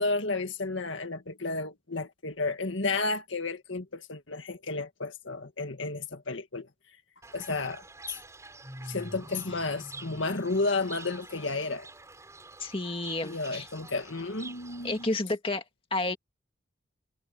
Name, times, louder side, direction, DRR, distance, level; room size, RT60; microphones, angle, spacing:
voice 1, 0.0-6.7 7.3-8.2 8.8-11.9 13.2-15.1, left 3 dB, 70° left, 1.9 m, -32 dB
Fowl / Bird, 7.2-15.1, right 2 dB, 15° right, 7.8 m, -46 dB
voice 2, 12.6-13.7 14.8-15.6 15.9-16.2, left 2 dB, 25° left, 2.0 m, -30 dB
head